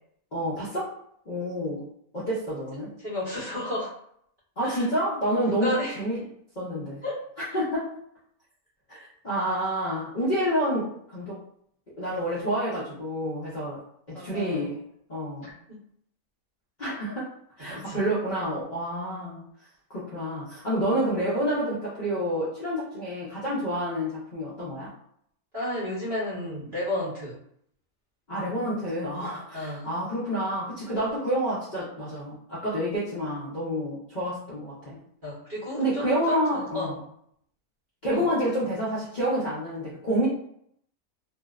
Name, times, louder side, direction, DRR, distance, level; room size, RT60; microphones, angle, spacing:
voice 1, 0.3-0.9 1.3-1.8 2.1-2.9 4.6-6.2 6.6-7.0 7.4-7.9 8.9-11.4 12.0-13.8 14.1-14.7 15.1-15.4 16.8-17.3 17.6-19.4 19.9-24.9 28.3-35.0 35.8-37.0 38.0-40.3, equal, 50° left, -9 dB, 0.5 m, -28 dB
voice 2, 3.0-3.9 4.6-4.9 5.5-6.0 7.0-7.2 7.5-7.6 14.1-14.7 15.4-15.5 17.7-18.0 25.5-27.4 29.5-29.9 35.2-37.0 38.1-38.3, left 1 dB, 45° right, -8 dB, 0.7 m, -32 dB
2.6 x 2.0 x 2.3 m, 0.70 s
omnidirectional pair, 1.6 m